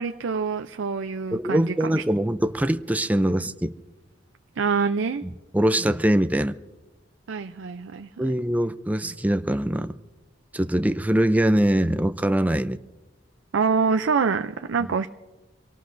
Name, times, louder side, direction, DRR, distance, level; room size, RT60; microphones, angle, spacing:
voice 1, 0.0-2.0 4.6-5.2 7.3-8.3 13.5-15.1, right 5 dB, 85° right, 8 dB, 0.5 m, -25 dB
voice 2, 1.3-3.7 5.5-6.6 8.2-9.9 10.5-12.8 14.8-14.9, right 1 dB, 10° right, 11 dB, 0.5 m, -23 dB
26.5 x 18.0 x 2.6 m, 1.1 s
head